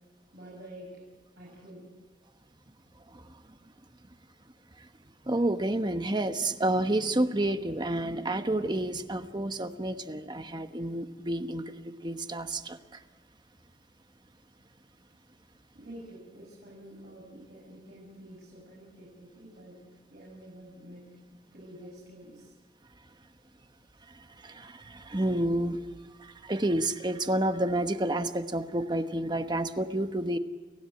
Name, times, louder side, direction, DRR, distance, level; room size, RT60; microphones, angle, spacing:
voice 1, 0.3-1.0 1.4-1.9 15.7-19.8 20.1-22.6 23.9-24.0, right 1 dB, 60° right, -4 dB, 7.0 m, -48 dB
voice 2, 5.3-12.8 24.4-25.8 26.2-30.4, right 1 dB, 25° right, 9 dB, 1.1 m, -29 dB
29.0 x 16.0 x 9.1 m, 1.4 s
head